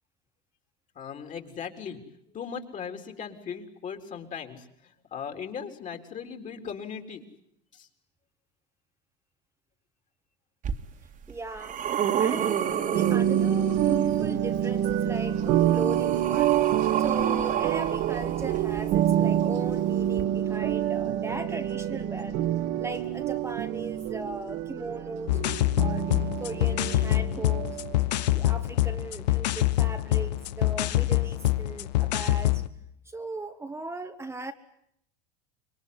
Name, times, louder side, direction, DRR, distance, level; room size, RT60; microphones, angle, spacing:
voice 1, 1.0-2.0 2.3-7.2 7.7-7.9, left 7 dB, 40° left, 6 dB, 4.0 m, -38 dB
sound 1, 10.6-10.7 11.3-14.1 15.3-19.2 20.1-20.2, right 9 dB, 40° right, 2.2 m, -30 dB
voice 2, 11.3-11.8 12.2-22.4 22.8-25.4 25.8-27.8 28.2-32.6 33.0-34.5, right 2 dB, 10° right, 6 dB, 1.5 m, -38 dB
sound 2, 12.9-28.0, right 11 dB, 60° right, 1.9 m, -27 dB
sound 3, 25.3-32.7, left 15 dB, 90° left, 1.1 m, -25 dB
26.5 x 22.5 x 9.7 m, 0.72 s
supercardioid pair, 105°, 21 cm